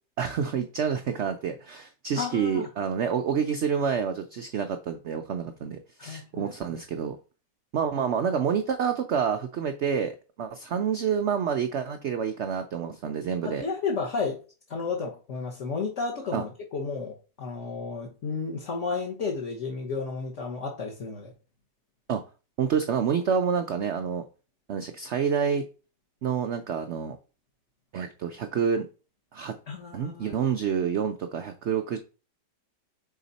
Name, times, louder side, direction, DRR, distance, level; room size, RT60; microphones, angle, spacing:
voice 1, 0.2-7.2 7.7-13.7 16.3-16.4 22.1-22.3 22.6-24.2 24.7-25.7 26.2-27.2 27.9-28.9 29.3-29.5 29.9-32.0, right 7 dB, 85° right, 0.6 m, -28 dB
voice 2, 2.2-2.7 6.0-6.5 13.4-14.4 14.7-21.3 29.7-30.3, left 4 dB, 50° left, 1.3 m, -32 dB
5.7 x 4.1 x 4.0 m
omnidirectional pair, 1.8 m